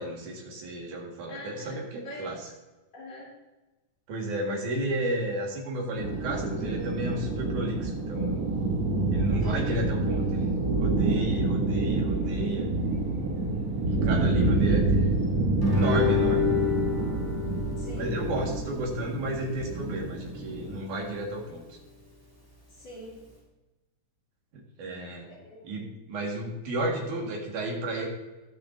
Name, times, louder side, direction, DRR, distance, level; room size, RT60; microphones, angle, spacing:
voice 1, 0.0-2.5 4.1-8.5 9.1-12.7 13.9-15.1 15.6-16.5 18.0-21.6 24.5-25.3 25.6-28.1, right 1 dB, 80° right, 0 dB, 3.4 m, -32 dB
voice 2, 1.3-1.8 2.0-2.3 2.9-3.3 9.4-9.8 17.8-18.1 22.8-23.1 25.3-25.9, equal, 60° left, -7 dB, 4.8 m, -43 dB
sound 1, 6.0-20.8, right 2 dB, 60° right, 0.9 m, -28 dB
Guitar, 15.6-20.7, left 5 dB, 10° right, 1.3 m, -29 dB
19.5 x 6.8 x 2.7 m, 1.1 s
omnidirectional pair, 3.4 m